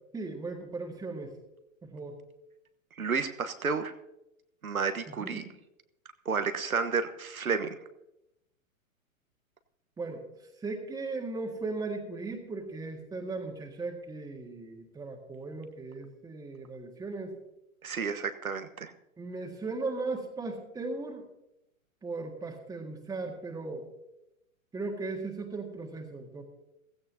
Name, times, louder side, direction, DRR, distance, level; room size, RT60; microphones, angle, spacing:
voice 1, 0.1-1.3 1.8-2.1 5.2-5.5 10.0-10.2 10.6-17.3 19.2-21.2 22.0-23.8 24.7-26.4, right 3 dB, 10° right, 1 dB, 1.7 m, -37 dB
voice 2, 3.0-3.9 4.6-5.5 6.2-7.7 17.8-18.9, right 5 dB, 80° right, 9 dB, 1.3 m, -31 dB
16.5 x 15.5 x 2.8 m, 0.87 s
figure-of-eight pair, 115°, 42 cm